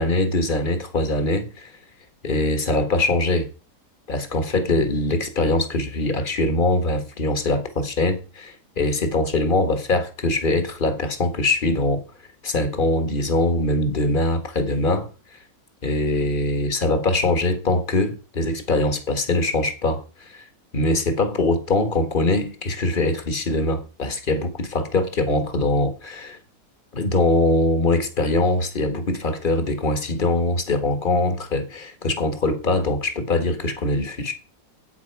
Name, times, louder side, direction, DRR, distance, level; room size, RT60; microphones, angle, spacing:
voice 1, 0.0-1.7 2.2-3.5 4.1-12.0 12.4-15.1 15.8-20.4 20.7-26.4 26.9-34.3, left 2 dB, 30° left, 1.5 m, -22 dB
8.8 x 8.7 x 4.6 m
omnidirectional pair, 2.0 m